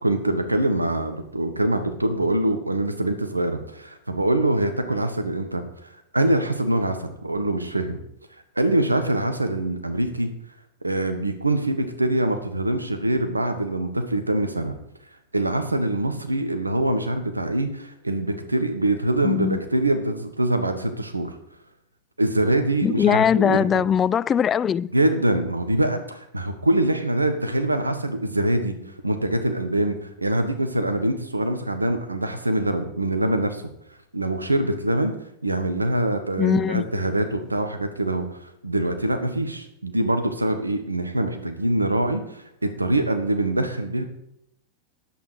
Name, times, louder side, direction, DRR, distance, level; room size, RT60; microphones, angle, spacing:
voice 1, 0.0-5.6 6.1-8.0 8.5-10.3 10.8-14.7 15.3-21.4 22.2-23.8 24.9-28.7 29.0-33.6 34.1-35.1 35.4-38.2 38.6-44.0, right 1 dB, 85° right, 1.4 m, -24 dB
voice 2, 19.2-19.6 22.8-24.9 36.4-36.8, left 8 dB, 25° left, 0.3 m, -21 dB
10.0 x 8.3 x 5.0 m
figure-of-eight pair, 90°, 0 cm